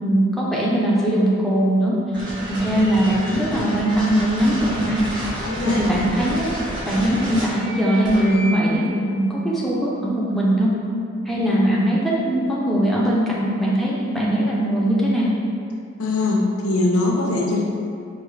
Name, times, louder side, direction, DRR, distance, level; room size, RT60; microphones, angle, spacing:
voice 1, 0.0-2.0 2.5-5.0 5.6-6.5 6.9-10.8 11.3-15.3, right 1 dB, ahead, -7 dB, 0.4 m, -20 dB
sound 1, 2.1-8.8, right 1 dB, 20° right, 0.8 m, -30 dB
voice 2, 5.4-5.8 16.0-17.6, left 2 dB, 85° left, -1 dB, 0.5 m, -21 dB
4.7 x 2.0 x 3.1 m, 2.6 s
head